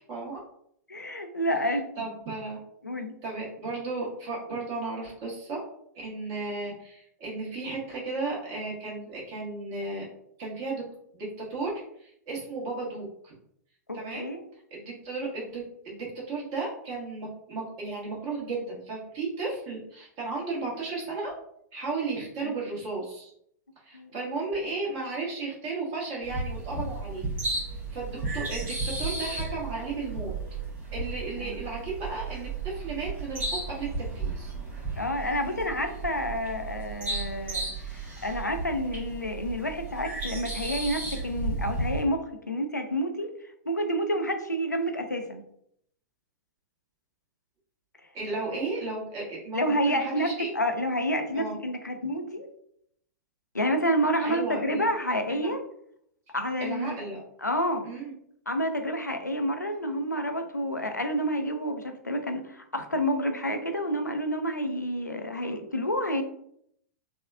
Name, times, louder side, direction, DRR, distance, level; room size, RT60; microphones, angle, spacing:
voice 1, 0.1-0.4 2.0-2.6 3.2-5.6 5.9-10.1 10.4-10.8 11.1-13.4 13.9-14.3 14.7-21.3 21.7-23.3 23.8-27.3 27.9-30.3 30.9-34.5 48.1-50.5 51.3-51.5 54.2-54.8 55.3-55.5 56.6-57.2 57.8-58.1 65.4-65.5, right 3 dB, 35° right, -4 dB, 1.3 m, -34 dB
voice 2, 0.9-2.1 2.8-3.1 13.9-14.4 22.4-22.5 23.9-24.1 31.4-31.6 35.0-43.3 43.7-45.4 49.5-52.5 53.5-55.6 56.3-57.0 57.4-57.9 58.5-66.2, equal, 90° left, 5 dB, 0.4 m, -29 dB
sound 1, 26.2-42.0, right 3 dB, 20° right, 1.1 m, -34 dB
3.5 x 2.2 x 2.3 m, 0.70 s
figure-of-eight pair, 105°, 9 cm